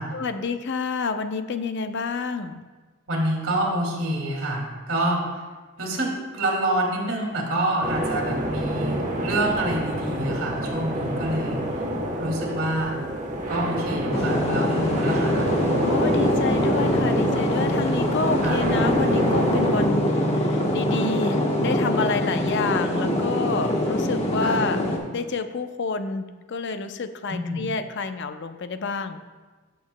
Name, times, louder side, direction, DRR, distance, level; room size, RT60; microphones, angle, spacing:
voice 1, 0.1-2.6 15.8-24.8 25.1-29.2, left 4 dB, 60° left, 9 dB, 0.6 m, -29 dB
voice 2, 3.1-5.2 5.8-11.6 12.2-12.9 13.5-15.5 18.4-18.6 22.3-22.6 24.4-24.6 27.3-27.6, right 1 dB, 75° right, -1 dB, 2.3 m, -27 dB
sound 1, 7.8-19.9, right 1 dB, 40° right, 1.1 m, -28 dB
sound 2, 14.1-25.0, left 1 dB, 30° left, 1.2 m, -24 dB
14.5 x 6.8 x 2.2 m, 1.3 s
head